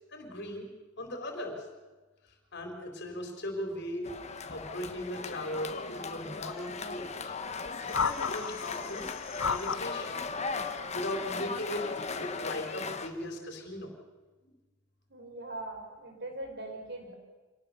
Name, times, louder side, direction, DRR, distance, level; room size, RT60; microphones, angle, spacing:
voice 1, 0.1-0.7 1.0-1.7 2.5-4.1 4.5-7.3 7.8-9.1 9.4-10.3 10.9-11.9 12.1-13.9, left 1 dB, 55° left, 3 dB, 4.3 m, -38 dB
sound 1, 4.0-13.1, left 4 dB, 35° left, 1.2 m, -38 dB
sound 2, 7.9-10.0 10.9-11.2, left 5 dB, 75° left, 0.9 m, -33 dB
voice 2, 15.1-17.1, right 2 dB, 55° right, 3 dB, 5.2 m, -41 dB
26.0 x 18.5 x 6.9 m, 1.3 s
head